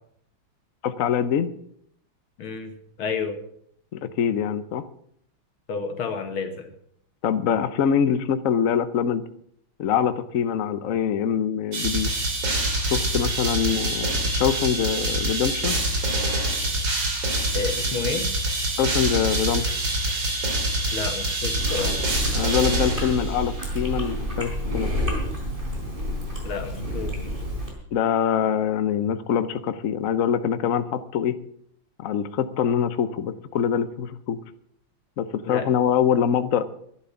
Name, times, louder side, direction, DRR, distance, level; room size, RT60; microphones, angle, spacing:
voice 1, 0.8-1.5 3.9-4.8 7.2-9.2 9.8-12.1 12.9-15.8 18.8-19.7 22.3-24.9 27.9-31.4 32.0-34.4 35.2-36.6, left 8 dB, 60° left, 12 dB, 0.8 m, -24 dB
voice 2, 2.4-2.7 3.0-3.4 5.7-6.7 17.5-18.3 20.9-22.0 26.4-27.2 35.4-35.7, left 5 dB, 75° left, 6 dB, 2.6 m, -30 dB
sound 1, 11.7-23.6, right 2 dB, 65° right, 3.6 m, -25 dB
Chewing mastication, 21.6-27.7, equal, 25° right, 4.3 m, -29 dB
11.5 x 11.5 x 7.1 m, 0.68 s
omnidirectional pair, 2.3 m